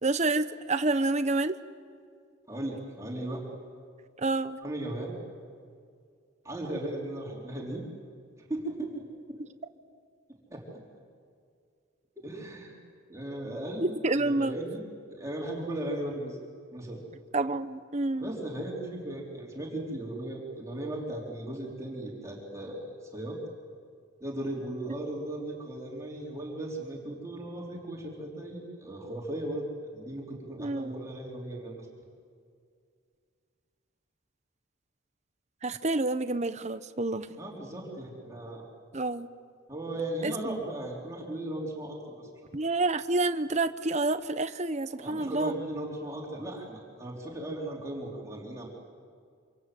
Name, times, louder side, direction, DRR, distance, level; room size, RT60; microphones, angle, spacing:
voice 1, 0.0-1.6 4.2-4.6 13.8-14.6 17.3-18.3 30.6-31.0 35.6-37.3 38.9-39.3 40.2-40.6 42.5-45.5, right 2 dB, 30° right, 11 dB, 0.9 m, -28 dB
voice 2, 2.5-3.5 4.6-5.1 6.4-7.8 8.5-9.0 10.5-10.6 12.2-12.8 13.1-16.4 16.7-17.0 18.2-23.4 24.2-29.7 29.9-31.9 37.4-38.7 39.7-42.3 45.0-48.7, right 1 dB, 15° right, -3 dB, 3.9 m, -37 dB
27.0 x 27.0 x 7.8 m, 2.2 s
head